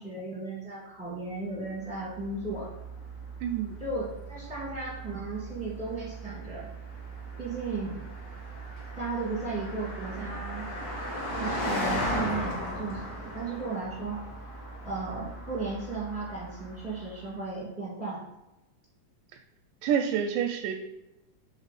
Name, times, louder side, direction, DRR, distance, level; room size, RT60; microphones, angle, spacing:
voice 1, 0.0-2.7 3.8-6.7 7.4-8.0 9.0-10.7 11.4-14.2 14.8-18.2, right 3 dB, 5° right, -7 dB, 0.7 m, -35 dB
Car passing by, 1.6-17.3, equal, 50° left, 1.1 m, -37 dB
voice 2, 3.4-3.7 19.8-20.7, right 8 dB, 85° right, 4 dB, 2.1 m, -27 dB
7.2 x 3.6 x 4.0 m, 0.97 s
omnidirectional pair, 3.7 m